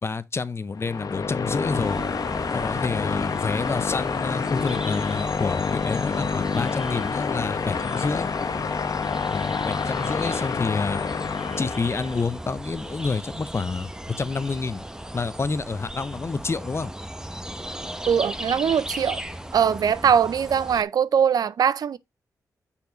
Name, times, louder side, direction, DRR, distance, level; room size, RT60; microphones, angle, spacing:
voice 1, 0.0-2.0 2.5-8.3 9.3-11.0 11.6-14.8 15.1-16.9, left 4 dB, 40° left, 0.7 m, -28 dB
sound 1, 0.7-12.3, left 5 dB, 65° left, 0.9 m, -28 dB
sound 2, 1.7-20.8, right 1 dB, 10° right, 0.8 m, -37 dB
voice 2, 18.1-19.2 19.5-22.0, right 7 dB, 70° right, 0.4 m, -21 dB
7.1 x 4.6 x 3.9 m
cardioid pair, 65°, 7 cm